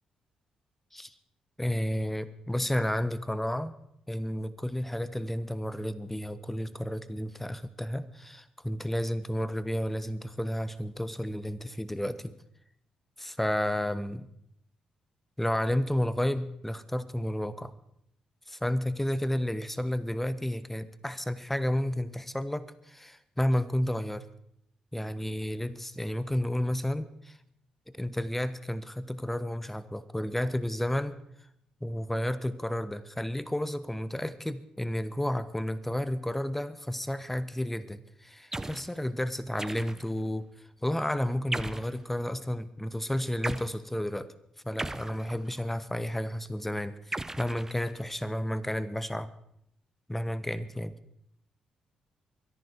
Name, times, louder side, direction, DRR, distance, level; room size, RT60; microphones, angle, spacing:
voice 1, 1.6-3.8 4.1-12.3 13.2-14.3 15.4-17.7 18.5-24.3 24.9-27.4 27.9-31.2 31.8-40.5 40.8-44.3 44.6-49.3 50.1-51.0, left 1 dB, 10° left, 15 dB, 1.3 m, -31 dB
sound 1, 38.5-38.9 39.6-40.2 41.5-42.0 43.4-43.7 44.8-45.7 47.1-48.2, right 2 dB, 15° right, 0.8 m, -37 dB
23.5 x 11.0 x 4.7 m, 0.75 s
hypercardioid pair, 45°, 3 cm